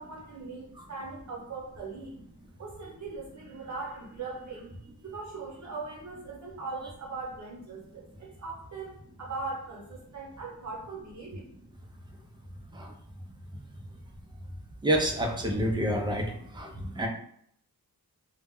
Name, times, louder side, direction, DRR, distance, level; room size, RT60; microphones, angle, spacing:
voice 1, 0.0-2.1 2.6-4.7 5.0-8.9 9.2-11.4, right 3 dB, 45° right, -4 dB, 0.8 m, -40 dB
voice 2, 14.8-16.2 16.5-16.7 17.0-17.1, equal, 15° right, 1 dB, 0.3 m, -27 dB
2.1 x 2.0 x 3.5 m, 0.67 s
wide cardioid pair, 140°, 39 cm